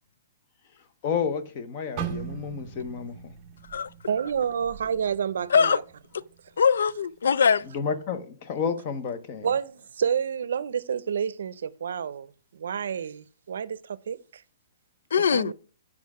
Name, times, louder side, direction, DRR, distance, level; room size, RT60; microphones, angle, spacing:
voice 1, 1.0-3.3 7.7-9.5, left 6 dB, 25° left, 0.7 m, -30 dB
sound 1, 2.0-6.0 6.4-6.6 7.3-7.6, right 8 dB, 20° right, 0.6 m, -39 dB
voice 2, 4.1-5.8 9.4-14.4 15.3-15.5, right 7 dB, 65° right, 0.6 m, -29 dB
voice 3, 6.6-7.6 15.1-15.5, left 6 dB, 90° left, 0.3 m, -21 dB
8.4 x 4.8 x 4.7 m
hypercardioid pair, 180°, 0 cm